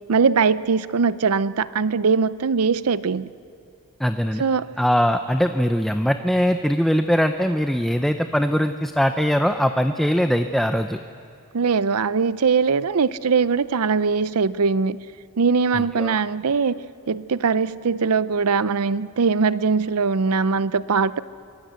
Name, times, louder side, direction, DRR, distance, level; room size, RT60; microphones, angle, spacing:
voice 1, 0.1-3.3 4.4-4.7 11.5-15.0 15.4-21.2, right 5 dB, 80° right, 0.6 m, -21 dB
voice 2, 4.0-4.4 4.8-11.0 15.7-16.2, equal, ahead, 0.5 m, -21 dB
24.5 x 19.5 x 8.2 m
head